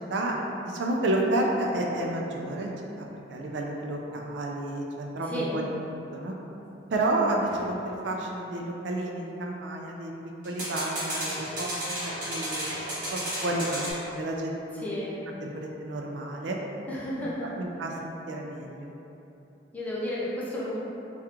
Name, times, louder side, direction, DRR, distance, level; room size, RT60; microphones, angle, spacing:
voice 1, 0.6-5.6 6.1-6.3 6.9-10.1 10.4-12.0 12.3-14.9 15.4-16.6 17.2-17.3 17.6-18.9, right 1 dB, 70° right, -1 dB, 0.3 m, -31 dB
voice 2, 5.2-5.6 14.8-15.2 16.9-17.5 19.7-20.8, equal, 10° left, -7 dB, 0.5 m, -32 dB
sound 1, 7.5-7.7 10.4-13.9, right 1 dB, 50° right, 1.0 m, -33 dB
3.5 x 2.3 x 2.9 m, 3.0 s
head